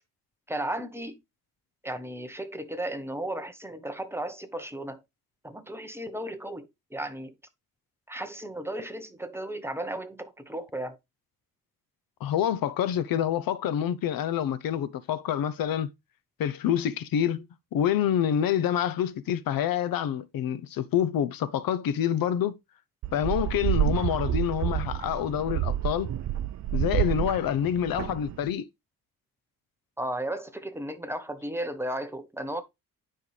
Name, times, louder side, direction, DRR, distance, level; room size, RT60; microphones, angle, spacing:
voice 1, 0.5-1.2 1.8-5.0 5.4-7.3 8.1-11.0 30.0-32.6, right 1 dB, 5° right, 0.9 m, -35 dB
voice 2, 12.2-15.9 16.4-17.5 17.7-22.6 23.1-26.1 26.7-28.7, left 10 dB, 75° left, 0.8 m, -27 dB
sound 1, 23.0-28.5, right 13 dB, 50° right, 0.5 m, -29 dB
9.6 x 5.6 x 3.3 m
wide cardioid pair, 175°, 34 cm